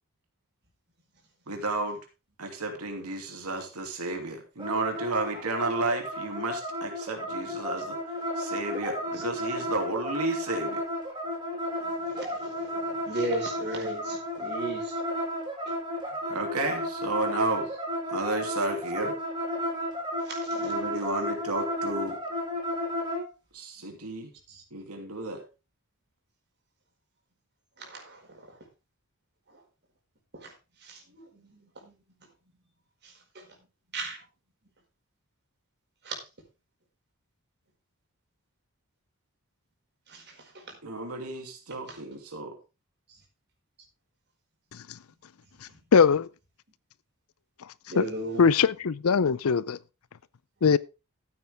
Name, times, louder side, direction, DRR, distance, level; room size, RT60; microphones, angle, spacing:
voice 1, 1.5-2.0 2.4-8.0 8.4-10.8 16.3-17.7 18.1-19.1 20.6-22.2 23.5-24.3 24.7-25.4 40.8-42.6, right 2 dB, 85° right, 2.8 m, -32 dB
sound 1, 4.6-23.2, left 1 dB, 20° right, 6.3 m, -33 dB
voice 2, 11.8-15.0 20.2-20.7 24.5-24.6 27.8-28.3 30.3-30.5 30.8-31.9 33.0-33.5 33.9-34.2 36.0-36.2 40.1-40.2 40.5-40.6 41.9-42.0 47.9-48.4, right 2 dB, 50° right, 4.8 m, -36 dB
voice 3, 45.9-46.3 47.9-48.1 48.4-49.8 50.6-50.8, left 5 dB, 70° left, 0.5 m, -21 dB
14.0 x 8.7 x 3.6 m
head